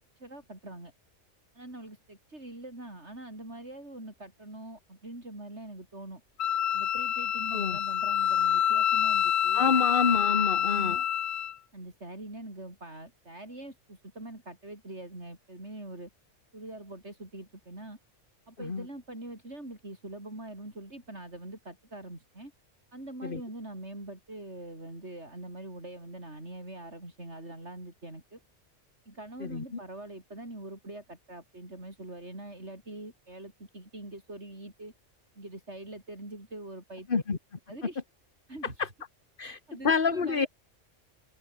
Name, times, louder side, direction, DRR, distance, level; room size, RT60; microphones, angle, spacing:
voice 1, 0.2-0.9 1.5-6.2 6.7-9.9 10.5-11.1 11.7-16.1 16.5-18.0 18.5-22.5 22.9-28.4 29.1-34.9 35.4-37.1 37.7-38.0 38.5-38.9 39.4-40.5, right 1 dB, 65° right, 7.3 m, -43 dB
Wind instrument woodwind instrument, 6.4-11.5, left 9 dB, 65° left, 1.0 m, -27 dB
voice 2, 9.5-11.0 18.6-18.8 23.2-23.4 29.4-29.6 37.1-37.4 38.8-38.9 39.4-39.6 39.8-40.5, left 5 dB, 45° left, 1.7 m, -27 dB
omnidirectional pair, 1.2 m